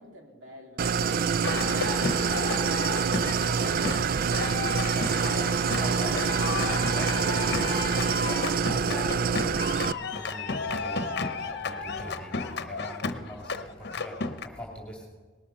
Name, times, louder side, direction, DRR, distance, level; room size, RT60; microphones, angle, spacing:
voice 1, 0.0-3.6, right 1 dB, 80° right, 1 dB, 3.0 m, -49 dB
Idling, 0.8-9.9, right 6 dB, 50° right, 0.4 m, -26 dB
sound 1, 1.4-14.5, left 4 dB, 60° left, 0.9 m, -33 dB
voice 2, 3.4-3.8 4.3-5.1 5.7-6.2 6.9-12.4 12.6-15.0, left 1 dB, 5° left, -2 dB, 2.5 m, -42 dB
19.0 x 12.5 x 5.7 m, 1.4 s
head